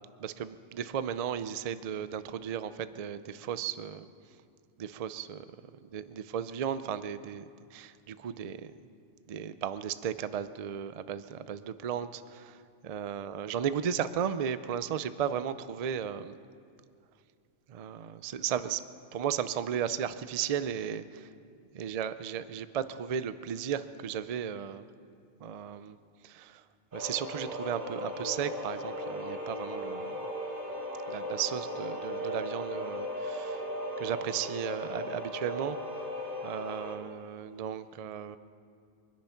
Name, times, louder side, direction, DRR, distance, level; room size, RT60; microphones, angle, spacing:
voice 1, 0.2-4.1 4.8-5.5 5.8-7.4 7.7-8.7 9.3-16.4 17.7-18.8 19.1-21.3 21.7-24.9 25.4-26.0 26.2-26.6 26.9-30.3 31.1-33.6 34.0-35.8 36.4-38.4, right 8 dB, 55° right, 13 dB, 0.4 m, -35 dB
sound 1, 26.9-37.0, equal, 40° right, 2.6 m, -37 dB
23.5 x 10.5 x 5.8 m, 2.3 s
omnidirectional pair, 1.3 m